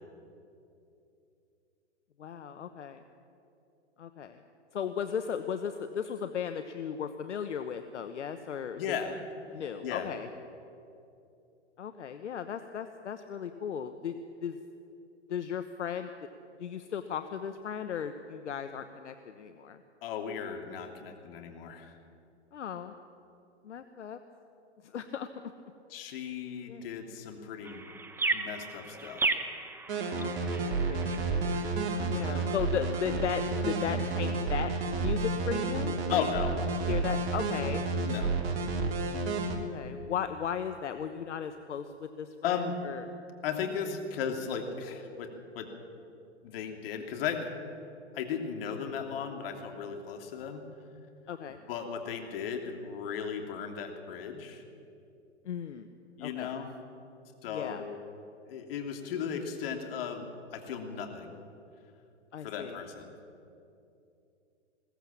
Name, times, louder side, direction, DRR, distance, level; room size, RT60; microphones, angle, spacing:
voice 1, 2.2-3.0 4.0-4.4 4.7-9.0 9.5-10.3 11.8-14.2 14.4-14.6 15.3-16.1 16.6-19.8 22.5-22.9 23.6-24.2 24.8-25.5 26.7-26.8 30.1-31.2 32.1-34.7 35.0-36.3 36.9-37.8 39.5-43.0 51.3-51.6 55.4-55.9 56.2-56.5 57.5-57.8 62.3-62.8, left 8 dB, 75° left, 9 dB, 1.1 m, -36 dB
voice 2, 8.8-9.2 9.8-10.1 20.0-22.0 25.9-27.8 28.3-29.3 32.2-32.5 36.1-36.5 38.0-38.3 42.4-42.7 43.4-45.7 46.4-47.5 48.1-50.6 51.7-54.6 56.2-56.7 57.4-58.0 58.5-61.4 62.4-63.1, left 7 dB, 50° left, 4 dB, 3.0 m, -36 dB
sound 1, 27.6-33.9, right 3 dB, 5° right, 0.9 m, -36 dB
sound 2, 29.9-39.6, right 3 dB, 50° right, 2.8 m, -31 dB
21.0 x 17.0 x 7.4 m, 2.7 s
hypercardioid pair, 120°, 36 cm